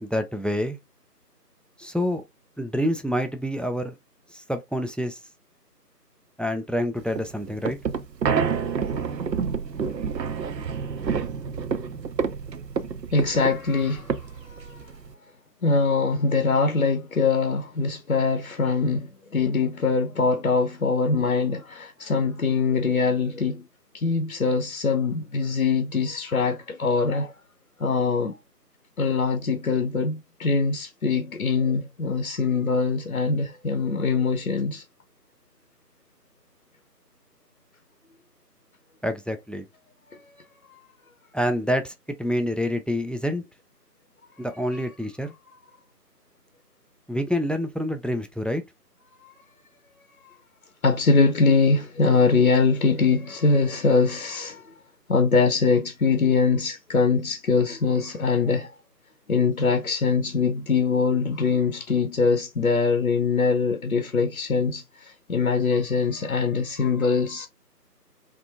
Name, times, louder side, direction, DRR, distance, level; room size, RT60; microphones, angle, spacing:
voice 1, 0.0-0.8 1.8-2.2 2.6-3.9 4.3-5.2 6.4-7.8 39.0-39.6 41.3-41.9 42.2-43.4 44.4-45.3 47.1-48.6, equal, ahead, 0.3 m, -27 dB
sound 1, 7.0-15.1, right 6 dB, 85° right, 0.6 m, -29 dB
voice 2, 13.1-14.8 15.6-23.7 23.9-27.3 27.8-28.4 29.0-34.8 40.1-40.2 40.7-40.8 44.7-44.9 49.2-49.3 50.8-54.7 55.1-58.7 59.3-67.5, left 4 dB, 55° left, 0.6 m, -23 dB
3.5 x 2.5 x 2.7 m
figure-of-eight pair, 160°, 49 cm